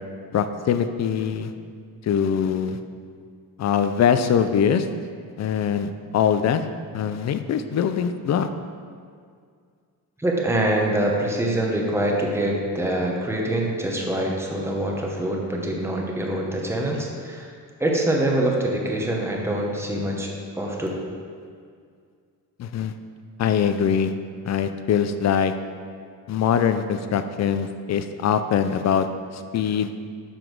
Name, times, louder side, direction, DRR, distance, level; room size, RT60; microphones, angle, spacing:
voice 1, 0.3-1.5 2.0-2.8 3.6-4.9 5.4-6.6 6.9-8.5 22.6-22.9 23.4-24.1 24.4-25.5 26.3-29.1 29.3-29.9, left 8 dB, 50° left, 10 dB, 0.4 m, -22 dB
voice 2, 10.2-17.5 17.8-20.9, right 1 dB, 5° right, -1 dB, 0.8 m, -24 dB
7.0 x 5.9 x 4.7 m, 2.1 s
wide cardioid pair, 170°, 37 cm